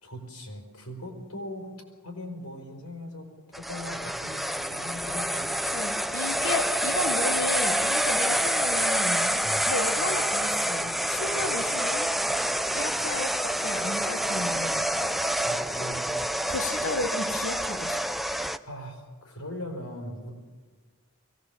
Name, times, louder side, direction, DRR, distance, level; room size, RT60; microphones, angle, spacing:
voice 1, 0.0-1.7 2.0-5.5 9.4-9.7 11.4-11.5 15.4-16.1 18.7-20.3, left 1 dB, 85° left, 3 dB, 4.8 m, -40 dB
sound 1, 3.5-18.6, right 1 dB, ahead, 0.5 m, -27 dB
voice 2, 5.7-12.1 12.7-14.9 15.2-15.4 16.5-18.2, left 2 dB, 65° left, 7 dB, 1.3 m, -34 dB
22.5 x 18.0 x 7.1 m, 1.5 s
head